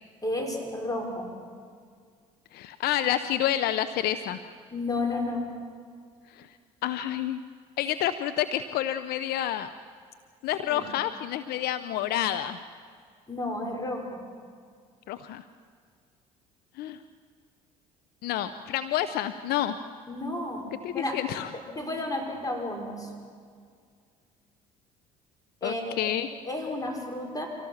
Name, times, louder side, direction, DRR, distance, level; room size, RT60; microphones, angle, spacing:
voice 1, 0.2-1.3 4.7-5.5 10.7-10.9 13.3-14.2 20.1-20.7 20.9-21.2 21.7-23.1 25.6-26.0 26.4-27.5, left 2 dB, 20° left, 2 dB, 5.8 m, -32 dB
voice 2, 2.5-4.4 6.3-6.5 6.8-7.4 7.8-9.7 10.4-12.6 15.1-15.4 16.8-17.0 18.2-19.7 20.8-21.5 25.6-26.3, left 11 dB, 65° left, 11 dB, 0.8 m, -29 dB
25.0 x 17.5 x 7.3 m, 2.1 s
hypercardioid pair, 65°, 17 cm